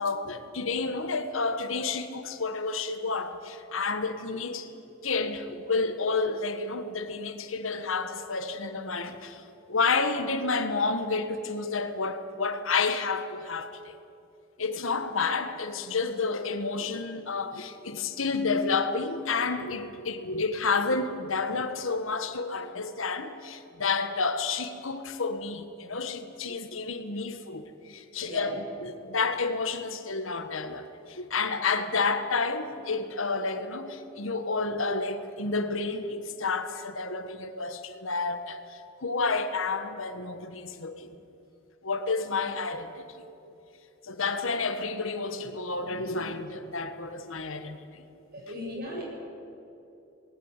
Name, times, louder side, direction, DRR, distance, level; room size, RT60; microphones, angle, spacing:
voice 1, 0.0-4.7 5.0-13.9 14.6-41.1 41.8-43.0 44.0-48.0 48.9-49.0, left 4 dB, 65° left, 1.5 m, -30 dB
voice 2, 28.2-28.5 48.3-49.0, left 1 dB, 50° right, 7.1 m, -37 dB
19.5 x 18.5 x 8.3 m
head